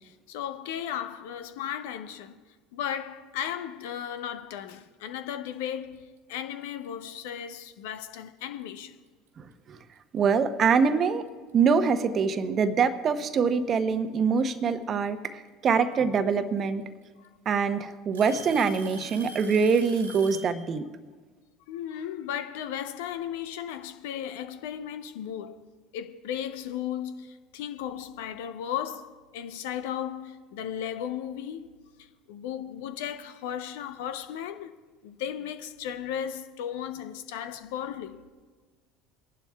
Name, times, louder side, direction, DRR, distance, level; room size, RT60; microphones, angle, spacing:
voice 1, 0.0-2.4 2.7-9.0 17.2-17.3 21.7-25.6 25.9-31.7 32.3-34.7 35.0-38.2, left 9 dB, 70° left, 0.7 m, -35 dB
Alarm / Tick-tock, 6.6-6.9 7.7-7.8 8.6-8.7 10.4-10.5 11.7-11.8 13.1-13.5 15.3-15.4 16.6-16.7 17.0-17.5 18.1-20.6, right 2 dB, 85° right, 1.7 m, -44 dB
voice 2, 9.4-9.8 10.1-11.3 11.5-16.8 17.5-20.8, right 5 dB, 40° right, 0.9 m, -24 dB
26.0 x 11.5 x 2.3 m
hypercardioid pair, 70°, 0 cm